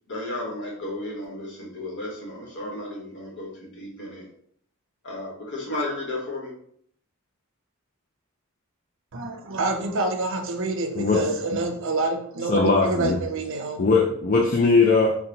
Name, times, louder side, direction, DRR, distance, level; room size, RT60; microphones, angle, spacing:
voice 1, 0.1-4.3 5.0-6.5, left 1 dB, 55° left, -2 dB, 1.3 m, -33 dB
voice 2, 9.1-14.1, right 2 dB, 60° right, 4 dB, 0.6 m, -27 dB
voice 3, 12.5-13.2 13.8-15.2, left 4 dB, 40° left, -2 dB, 0.4 m, -19 dB
4.0 x 2.2 x 3.9 m, 0.63 s
head